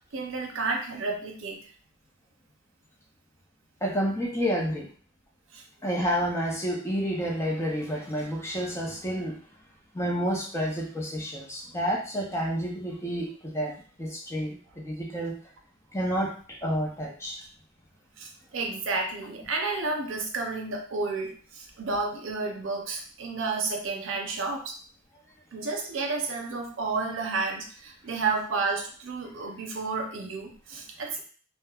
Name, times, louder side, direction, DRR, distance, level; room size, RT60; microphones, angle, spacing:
voice 1, 0.1-1.6 5.5-5.6 18.2-24.8 25.5-31.2, right 3 dB, 80° right, 2 dB, 0.5 m, -31 dB
voice 2, 3.8-4.9 5.8-9.4 9.9-13.7 14.0-15.3 15.9-16.3 16.6-17.4, equal, 15° left, -2 dB, 0.6 m, -29 dB
3.0 x 2.1 x 2.3 m, 0.43 s
head